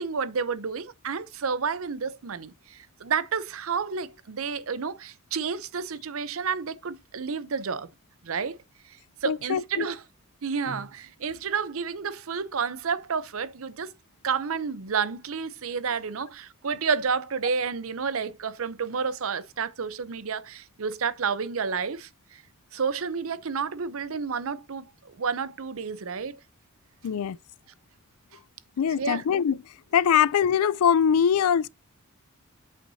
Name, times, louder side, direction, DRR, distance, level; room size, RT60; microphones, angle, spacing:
voice 1, 0.0-7.9 8.2-8.6 8.8-10.0 10.4-13.9 14.2-22.4 22.7-26.4 29.0-29.2, right 5 dB, 70° right, 0.6 m, -30 dB
voice 2, 9.3-9.9 27.0-27.4 28.8-29.6 29.9-31.7, left 8 dB, 85° left, 0.4 m, -22 dB
8.2 x 5.9 x 2.7 m
head